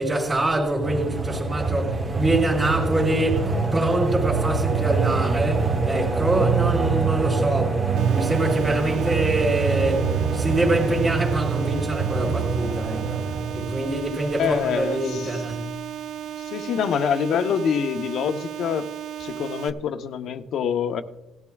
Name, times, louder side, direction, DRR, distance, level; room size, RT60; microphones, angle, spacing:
voice 1, 0.0-15.8, right 2 dB, 15° right, 3.0 m, -25 dB
sound 1, 0.8-13.9, right 4 dB, 30° right, 1.9 m, -24 dB
sound 2, 8.0-19.7, right 10 dB, 80° right, 0.6 m, -35 dB
voice 2, 14.4-15.3 16.4-18.9 19.2-21.0, left 7 dB, 55° left, 0.8 m, -25 dB
18.5 x 13.0 x 2.3 m
cardioid pair, 150°, 0 cm